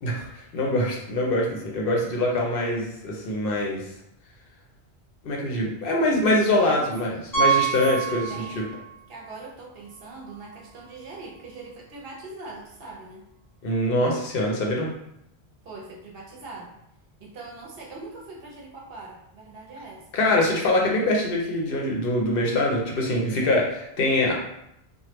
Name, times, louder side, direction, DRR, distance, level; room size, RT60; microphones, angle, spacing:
voice 1, 0.0-3.8 5.2-8.4 13.6-14.9 20.1-24.3, left 1 dB, 65° left, -1 dB, 0.8 m, -24 dB
voice 2, 6.3-6.7 7.0-7.2 8.1-8.8 9.1-13.3 15.6-16.8 17.2-20.0, right 3 dB, 65° right, -2 dB, 0.9 m, -42 dB
Piano, 7.3-8.9 9.2-9.4 9.9-10.0 10.3-10.4 12.5-12.6, right 7 dB, 25° left, 0.6 m, -25 dB
3.2 x 2.1 x 3.0 m, 0.81 s
omnidirectional pair, 1.1 m